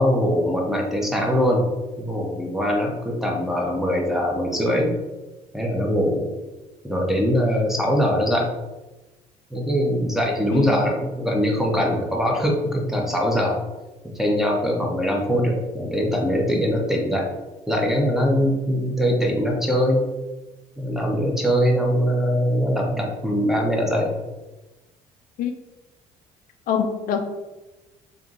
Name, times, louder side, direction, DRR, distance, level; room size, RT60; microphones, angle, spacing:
voice 1, 0.0-1.7 2.0-4.9 5.5-6.3 6.8-8.5 9.5-13.6 14.2-17.3 17.7-20.0 20.8-24.2, equal, ahead, -1 dB, 0.8 m, -22 dB
voice 2, 10.5-10.9 25.4-25.5 26.7-27.2, left 7 dB, 65° left, 5 dB, 0.4 m, -25 dB
3.5 x 2.6 x 2.4 m, 1.1 s
supercardioid pair, 85°, 16 cm